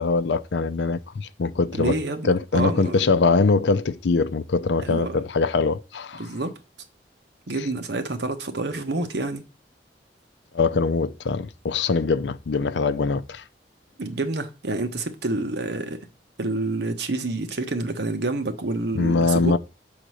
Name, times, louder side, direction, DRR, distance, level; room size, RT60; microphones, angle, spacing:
voice 1, 0.0-2.0 2.2-6.3 10.5-13.4 19.0-19.6, left 4 dB, 90° left, 0.5 m, -22 dB
voice 2, 1.7-3.0 4.8-5.1 6.2-6.5 7.5-9.4 14.0-16.0 16.4-19.6, right 2 dB, 75° right, 1.0 m, -28 dB
6.6 x 3.9 x 6.3 m
head